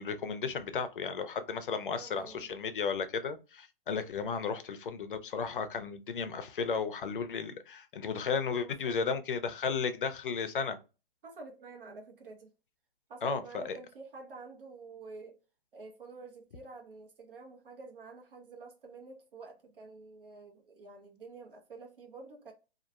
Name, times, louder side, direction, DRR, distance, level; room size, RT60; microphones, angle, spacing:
voice 1, 0.0-10.8 13.2-13.7, left 5 dB, 60° left, 0.5 m, -34 dB
voice 2, 1.9-2.5 3.9-4.1 8.5-9.2 11.2-12.5 13.1-15.4 15.7-22.5, right 4 dB, 65° right, 1.0 m, -48 dB
2.9 x 2.3 x 2.3 m
hypercardioid pair, 180°, 30 cm